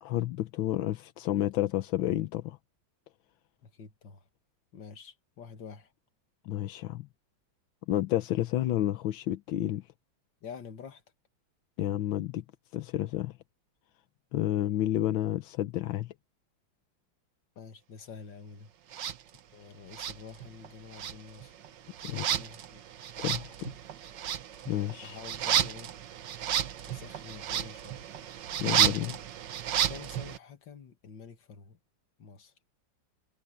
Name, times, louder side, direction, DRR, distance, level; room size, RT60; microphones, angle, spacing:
voice 1, 0.0-2.6 6.4-7.1 7.9-9.9 11.8-12.4 12.7-13.4 14.3-16.1 22.0-22.2 23.2-23.7 24.7-25.2 28.6-29.1, left 13 dB, 85° left, 1.6 m, -30 dB
voice 2, 3.6-4.3 4.7-5.9 10.4-11.0 17.6-18.7 19.5-21.5 22.0-22.8 25.0-26.0 26.9-28.1 29.0-29.2 29.9-31.8 32.2-32.5, left 6 dB, 70° left, 2.4 m, -48 dB
sound 1, 18.9-19.2 19.9-20.7 20.9-30.4, right 10 dB, 70° right, 1.6 m, -32 dB
omnidirectional pair, 2.1 m